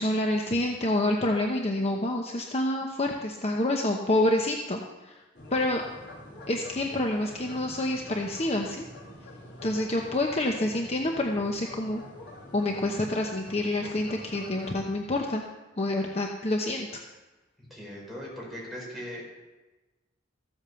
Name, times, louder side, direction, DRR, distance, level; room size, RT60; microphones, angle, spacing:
voice 1, 0.0-5.2 5.5-5.8 6.5-8.8 9.6-12.0 12.5-15.4 15.8-16.9, left 1 dB, 30° left, 1 dB, 1.0 m, -27 dB
sound 1, 5.3-14.8, left 1 dB, 55° left, 3.7 m, -46 dB
voice 2, 17.7-19.2, equal, ahead, -5 dB, 5.3 m, -39 dB
14.5 x 8.4 x 7.0 m, 1.2 s
head